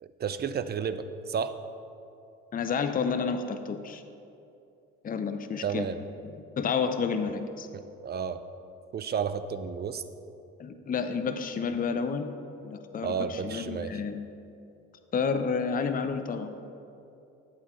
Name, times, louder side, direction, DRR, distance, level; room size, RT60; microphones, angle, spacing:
voice 1, 0.0-1.5 5.6-6.0 8.0-8.4 8.9-10.0 13.0-13.9, right 7 dB, 30° right, 11 dB, 0.5 m, -31 dB
voice 2, 2.5-4.0 5.0-5.9 6.2-7.7 10.6-12.3 12.6-14.2 15.1-16.5, left 5 dB, 25° left, 8 dB, 0.6 m, -30 dB
9.5 x 7.9 x 3.1 m, 2.7 s
supercardioid pair, 70°, 32 cm